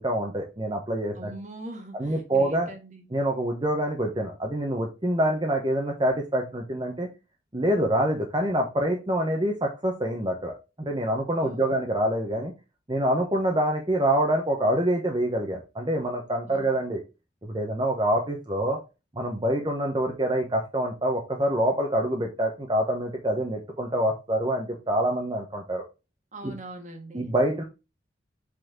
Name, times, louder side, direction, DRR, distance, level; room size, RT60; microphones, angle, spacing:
voice 1, 0.0-1.3 1.9-2.7 3.1-7.1 7.5-12.5 12.9-17.0 17.4-18.8 19.1-25.8 26.4-26.5 27.1-27.6, right 1 dB, 25° right, 1.1 m, -26 dB
voice 2, 1.2-3.0 11.3-11.7 16.5-16.8 26.3-27.2, right 1 dB, 40° right, 1.5 m, -42 dB
7.9 x 4.3 x 3.7 m
head